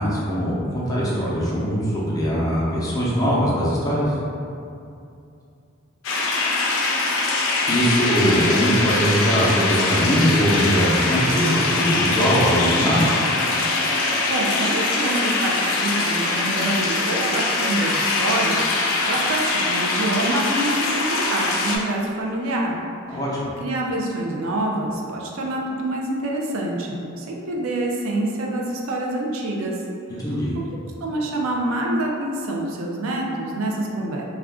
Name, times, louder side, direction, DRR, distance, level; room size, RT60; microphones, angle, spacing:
voice 1, 0.0-4.1 7.7-13.0 23.1-23.5 30.2-30.5, equal, 15° left, -7 dB, 0.5 m, -21 dB
sound 1, 6.0-21.8, left 3 dB, 75° left, 0.4 m, -22 dB
voice 2, 13.9-22.8 23.1-23.2 23.6-29.7 31.0-34.2, right 1 dB, 85° right, -1 dB, 0.4 m, -26 dB
2.4 x 2.2 x 3.5 m, 2.5 s
head